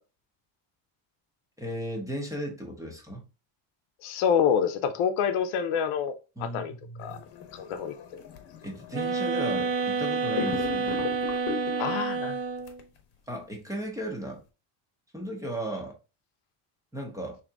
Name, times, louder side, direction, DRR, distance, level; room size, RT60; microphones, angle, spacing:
voice 1, 1.6-3.2 6.4-7.2 8.6-11.1 13.3-14.4 15.1-16.0 16.9-17.4, right 1 dB, 5° right, 0.6 m, -36 dB
voice 2, 4.0-6.1 6.4-6.7 7.0-7.2 7.5-8.2 11.8-12.4, left 7 dB, 85° left, 0.7 m, -27 dB
sound 1, 7.0-10.0 10.3-12.1 12.7-12.8, left 7 dB, 55° left, 0.9 m, -38 dB
sound 2, 8.9-12.8, right 4 dB, 70° right, 0.9 m, -29 dB
3.8 x 2.8 x 3.4 m
cardioid pair, 180°, 49 cm